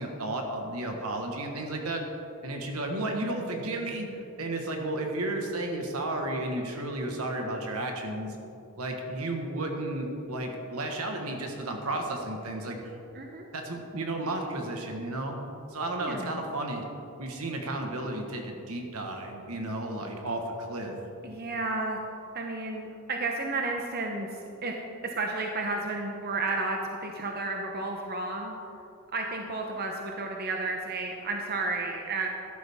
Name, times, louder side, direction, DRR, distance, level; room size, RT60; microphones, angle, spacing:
voice 1, 0.0-2.0 2.4-8.4 8.8-12.9 13.5-15.4 15.7-16.8 17.2-21.0, right 2 dB, 75° right, 3 dB, 1.5 m, -33 dB
voice 2, 13.1-13.5 16.0-16.4 21.2-22.0 22.3-24.7 25.0-28.6 29.1-32.3, right 3 dB, 45° right, 1 dB, 0.8 m, -32 dB
13.0 x 11.5 x 3.6 m, 2.8 s
head